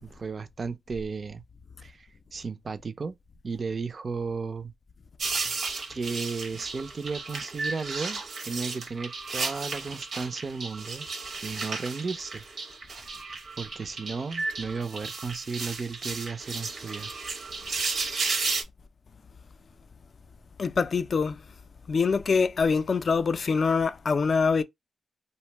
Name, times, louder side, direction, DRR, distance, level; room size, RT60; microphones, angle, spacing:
voice 1, 0.0-1.4 1.8-2.0 2.3-3.2 3.4-4.7 5.4-5.6 5.9-11.1 11.4-12.4 13.6-17.1, right 4 dB, 45° right, 0.4 m, -34 dB
Awkward Grocery Shopping, 5.2-18.6, right 4 dB, 70° right, 0.7 m, -34 dB
voice 2, 20.6-21.4 21.9-24.6, left 5 dB, 50° left, 0.3 m, -24 dB
2.6 x 2.0 x 3.1 m
cardioid pair, 85°, 0 cm